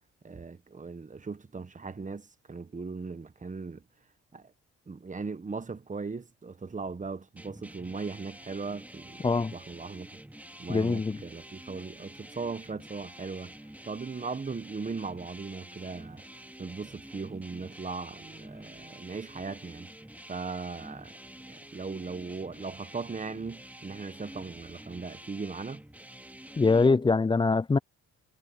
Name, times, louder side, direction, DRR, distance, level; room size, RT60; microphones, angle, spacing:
voice 1, 0.2-3.8 4.3-4.5 4.9-10.2 10.6-13.5 13.8-16.2 16.6-19.9 20.3-21.2 21.5-25.8, right 4 dB, 25° right, 1.4 m, -38 dB
sound 1, 7.4-26.9, right 1 dB, 5° right, 2.4 m, -48 dB
voice 2, 10.7-11.2 26.6-27.8, left 4 dB, 15° left, 0.4 m, -23 dB
cardioid pair, 80°, 31 cm